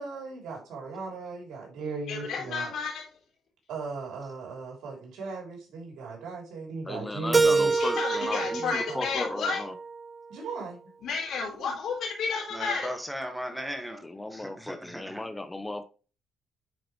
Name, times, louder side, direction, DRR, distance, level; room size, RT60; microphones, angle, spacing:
voice 1, 0.0-2.7 3.7-7.7 8.6-9.1 10.3-10.8 11.6-11.7, right 4 dB, 80° right, -1 dB, 3.3 m, -37 dB
voice 2, 2.1-3.0 7.7-9.6 11.0-12.9, left 5 dB, 70° left, -2 dB, 3.6 m, -31 dB
voice 3, 6.9-9.7 14.0-15.8, left 2 dB, 15° left, 10 dB, 0.7 m, -36 dB
Keyboard (musical), 7.3-10.2, right 4 dB, 25° right, 0.4 m, -27 dB
voice 4, 12.5-14.0 14.3-15.2, equal, 5° right, 5 dB, 1.7 m, -37 dB
9.4 x 4.7 x 3.1 m, 0.35 s
cardioid pair, 90°, 0 cm